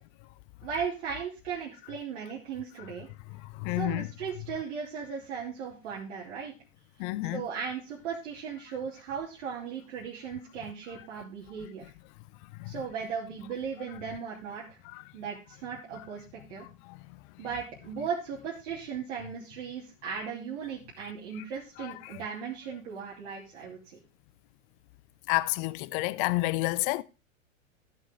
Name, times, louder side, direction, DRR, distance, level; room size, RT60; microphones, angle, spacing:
voice 1, 0.6-3.1 3.7-6.5 7.3-11.9 12.6-14.8 15.1-16.2 16.5-16.6 17.4-24.0, right 6 dB, 60° right, 3.0 m, -37 dB
voice 2, 3.5-4.1 7.0-7.4 12.6-12.7 14.9-15.0 16.6-17.0 21.8-22.2 25.3-27.0, left 20 dB, 40° left, 0.6 m, -30 dB
14.5 x 6.2 x 3.8 m
hypercardioid pair, 95°, 39 cm